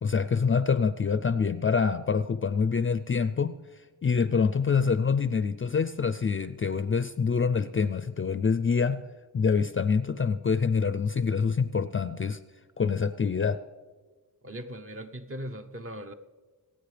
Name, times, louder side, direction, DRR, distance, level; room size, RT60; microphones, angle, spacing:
voice 1, 0.0-3.5 4.0-9.0 9.3-12.4 12.8-13.6, left 5 dB, 35° left, 13 dB, 0.4 m, -26 dB
voice 2, 14.4-16.1, equal, 35° right, 7 dB, 0.9 m, -39 dB
26.5 x 9.2 x 3.3 m, 1.4 s
wide cardioid pair, 100°, 39 cm